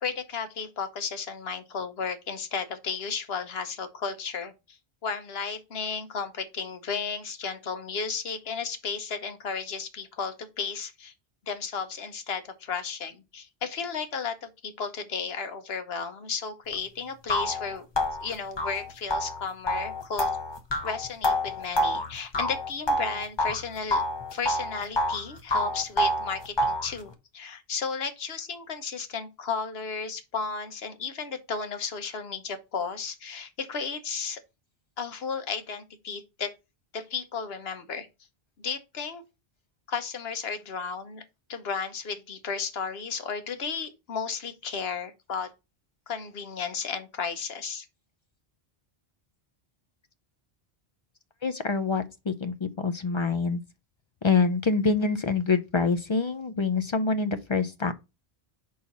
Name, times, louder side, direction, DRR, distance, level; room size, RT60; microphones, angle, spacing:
voice 1, 0.0-11.1 11.5-17.9 18.2-20.3 20.8-24.0 24.3-34.4 35.0-36.5 36.9-38.1 38.6-39.2 39.9-41.2 41.5-45.5 46.1-47.9, left 5 dB, 75° left, 1.2 m, -34 dB
sound 1, 16.7-16.8 17.3-23.6 23.9-25.2 25.5-26.9, left 1 dB, 30° left, 0.8 m, -27 dB
voice 2, 51.4-53.6 54.2-57.9, left 4 dB, 45° left, 0.4 m, -26 dB
4.7 x 4.1 x 5.8 m
omnidirectional pair, 1.0 m